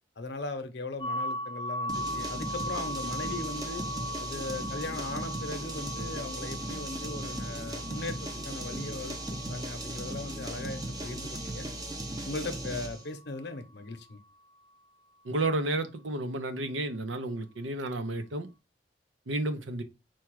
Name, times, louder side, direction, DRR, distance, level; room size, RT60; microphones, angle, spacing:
voice 1, 0.2-3.8 4.2-11.7 12.2-14.2, left 2 dB, 65° left, 0.8 m, -38 dB
sound 1, 1.0-12.7, equal, 25° left, 0.3 m, -39 dB
sound 2, 1.9-13.0, right 1 dB, 20° right, 0.6 m, -37 dB
voice 2, 15.2-18.5 19.3-19.8, right 2 dB, 90° right, 0.7 m, -31 dB
4.4 x 2.3 x 4.6 m
head